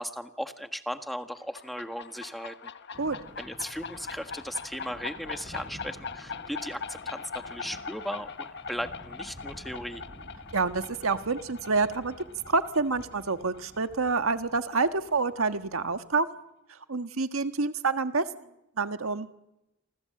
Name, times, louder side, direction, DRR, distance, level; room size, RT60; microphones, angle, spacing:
voice 1, 0.0-2.7 3.4-10.0, equal, ahead, 7 dB, 1.5 m, -37 dB
sound 1, 1.4-14.7, left 5 dB, 60° left, 1.3 m, -42 dB
Thunder, 2.9-16.0, equal, 25° right, 4.4 m, -51 dB
voice 2, 10.5-12.1 12.5-16.3 16.9-18.2 18.8-19.3, right 4 dB, 80° right, 9 dB, 1.5 m, -27 dB
28.5 x 25.5 x 7.8 m, 0.90 s
head